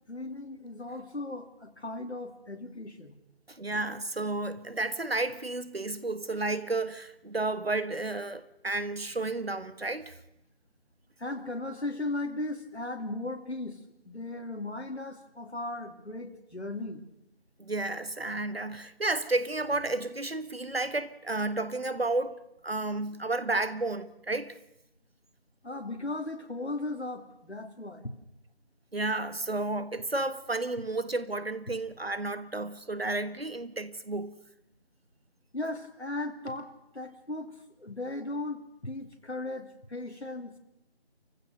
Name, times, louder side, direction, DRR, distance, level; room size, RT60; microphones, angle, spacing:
voice 1, 0.1-3.2 11.2-13.8 14.0-17.0 25.6-28.1 35.5-40.6, left 2 dB, 80° left, 2.9 m, -37 dB
voice 2, 3.5-10.2 17.6-24.5 28.9-34.3, right 2 dB, 65° right, 1.5 m, -32 dB
28.5 x 15.5 x 6.7 m
figure-of-eight pair, 175°, 33 cm